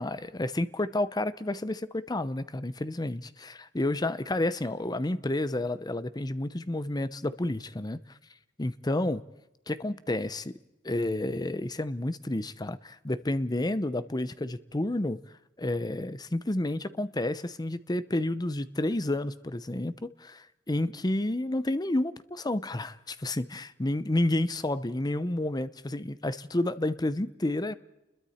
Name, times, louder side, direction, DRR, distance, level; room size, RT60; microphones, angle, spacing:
voice 1, 0.0-8.0 8.6-9.2 9.7-10.6 10.8-15.2 15.6-27.7, left 1 dB, 20° left, 0.7 m, -30 dB
29.5 x 21.5 x 4.3 m
head